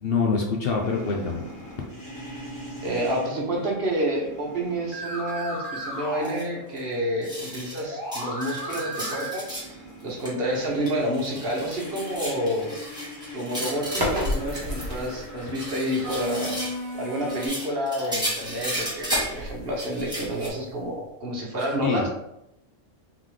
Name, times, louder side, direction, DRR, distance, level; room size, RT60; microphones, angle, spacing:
voice 1, 0.0-1.4 21.8-22.1, left 4 dB, 60° left, 0 dB, 0.7 m, -25 dB
sound 1, 0.6-7.0 7.2-17.5, equal, 40° left, 1.4 m, -38 dB
voice 2, 2.8-9.5 9.7-12.7 13.3-16.6 16.9-22.1, equal, 50° right, -2 dB, 1.2 m, -29 dB
sound 2, 6.2-6.4 6.8-6.9 7.2-7.8 8.1-9.7 10.0-10.3 10.6-15.1 15.4-16.8 17.2-19.4 19.8-20.5, right 1 dB, 5° right, 1.2 m, -34 dB
sound 3, 13.8-15.4 18.1-21.1, left 1 dB, 20° right, 0.9 m, -33 dB
3.7 x 3.7 x 3.1 m, 0.83 s
omnidirectional pair, 1.3 m